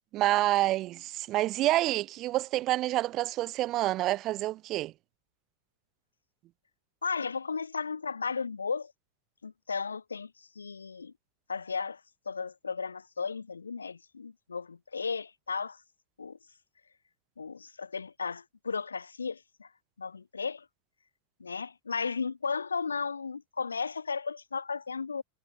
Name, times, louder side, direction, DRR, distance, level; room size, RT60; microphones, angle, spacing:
voice 1, 0.1-4.9, right 16 dB, 35° right, 0.6 m, -28 dB
voice 2, 7.0-8.9 9.4-10.3 10.6-11.1 11.5-12.0 12.3-15.8 16.2-16.4 17.4-19.7 20.0-20.7 21.4-25.2, left 5 dB, 75° left, 1.0 m, -35 dB
figure-of-eight pair, 90°, 0 cm